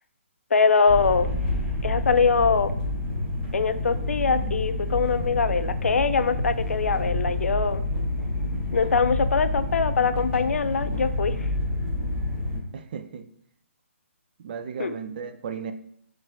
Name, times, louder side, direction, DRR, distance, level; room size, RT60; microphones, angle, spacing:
voice 1, 0.5-1.3 1.8-2.7 3.5-7.8 8.7-11.5 14.8-15.0, left 5 dB, 85° left, 0.3 m, -23 dB
sound 1, 0.9-12.6, left 1 dB, 10° right, 1.1 m, -28 dB
voice 2, 12.7-13.3 14.4-15.7, right 7 dB, 40° right, 0.4 m, -35 dB
5.7 x 3.1 x 2.4 m
hypercardioid pair, 150°, 7 cm